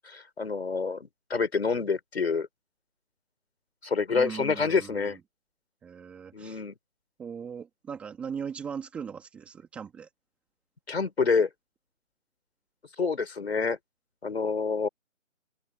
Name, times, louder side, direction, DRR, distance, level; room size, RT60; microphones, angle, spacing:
voice 1, 0.0-2.5 3.8-5.2 6.3-6.7 10.9-11.5 13.0-13.8 14.2-14.9, left 4 dB, 55° left, 5.7 m, -27 dB
voice 2, 4.1-5.0 5.8-6.6 7.2-10.1, right 7 dB, 5° right, 2.3 m, -39 dB
figure-of-eight pair, 170°, 38 cm